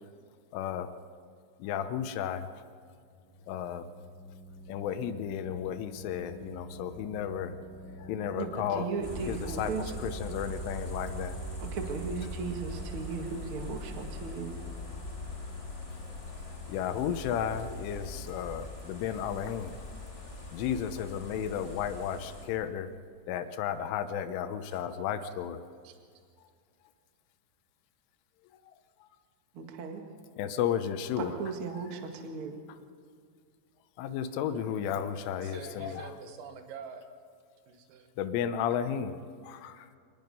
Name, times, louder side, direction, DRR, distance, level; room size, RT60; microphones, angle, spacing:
voice 1, 0.5-0.9 1.6-2.5 3.5-3.9 4.7-7.5 8.0-8.9 9.3-9.7 10.0-11.4 16.7-19.8 20.5-22.9 23.3-25.7 30.4-31.3 34.0-36.1 38.2-39.2, left 9 dB, 80° left, 10 dB, 3.3 m, -33 dB
sound 1, 2.7-19.4, equal, 25° right, 7.3 m, -50 dB
voice 2, 8.3-9.9 11.6-14.6 24.7-24.8 25.8-25.9 29.5-30.0 31.2-32.6, right 5 dB, 65° right, 3 dB, 1.3 m, -37 dB
sound 2, 9.0-22.5, left 1 dB, 10° left, 1.6 m, -41 dB
voice 3, 35.4-37.1 37.7-38.1, right 6 dB, 90° right, 6 dB, 4.2 m, -45 dB
26.0 x 20.0 x 5.4 m, 2.2 s
omnidirectional pair, 5.7 m